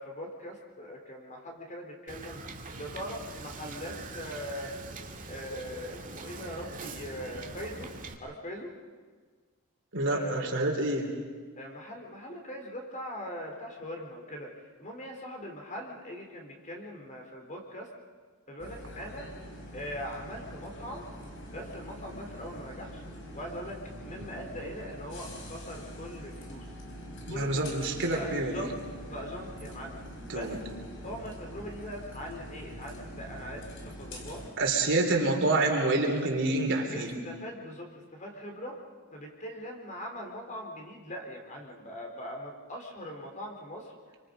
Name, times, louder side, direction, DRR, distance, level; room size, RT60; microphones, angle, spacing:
voice 1, 0.0-2.4 2.8-4.7 5.3-7.9 8.2-8.7 10.1-10.6 11.6-17.9 18.5-19.3 19.7-21.1 21.5-23.0 23.3-26.8 27.3-27.7 28.1-30.0 30.3-30.6 31.0-34.4 35.2-35.3 35.6-35.8 36.9-38.8 39.1-43.9, equal, 35° left, 2 dB, 3.9 m, -41 dB
Wind / Boat Water vehicle, 2.1-8.1, right 3 dB, 35° right, 2.0 m, -43 dB
voice 2, 9.9-11.1 27.3-28.5 30.3-30.6 34.6-37.1, right 2 dB, 55° right, 1 dB, 3.6 m, -27 dB
sound 1, 18.6-34.5, equal, 60° left, 4.3 m, -44 dB
27.5 x 25.0 x 5.3 m, 1.5 s
head